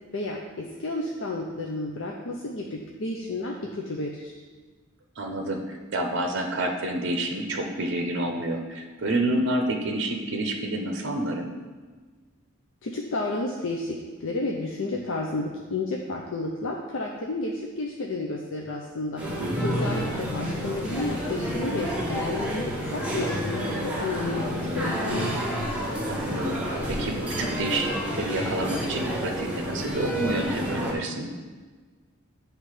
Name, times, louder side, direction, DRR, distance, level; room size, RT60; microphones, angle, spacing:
voice 1, 0.1-4.3 12.8-19.3 19.6-24.4 24.7-25.5, left 2 dB, 65° left, -1 dB, 0.6 m, -31 dB
voice 2, 5.2-11.5 19.4-19.9 26.1-31.3, right 1 dB, 60° right, 3 dB, 0.7 m, -29 dB
sound 1, 19.2-30.9, equal, 5° right, 1.1 m, -29 dB
9.2 x 3.3 x 4.9 m, 1.4 s
head